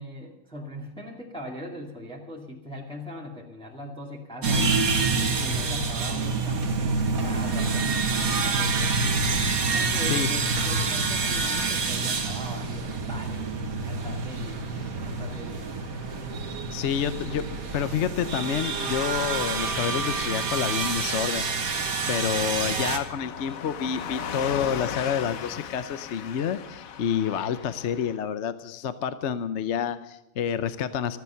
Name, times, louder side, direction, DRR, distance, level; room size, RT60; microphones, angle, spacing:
voice 1, 0.0-4.7 5.4-8.9 9.6-13.5 13.8-14.7 15.0-15.7, equal, 5° left, -2 dB, 2.3 m, -40 dB
sound 1, 4.4-23.0, right 4 dB, 85° right, 2.0 m, -27 dB
Car passing by / Truck, 13.8-28.2, left 7 dB, 75° left, 1.3 m, -40 dB
voice 2, 16.7-17.4 17.7-21.7 22.1-31.2, left 8 dB, 60° left, 12 dB, 1.0 m, -28 dB
16.0 x 14.0 x 5.7 m, 0.96 s
omnidirectional pair, 1.5 m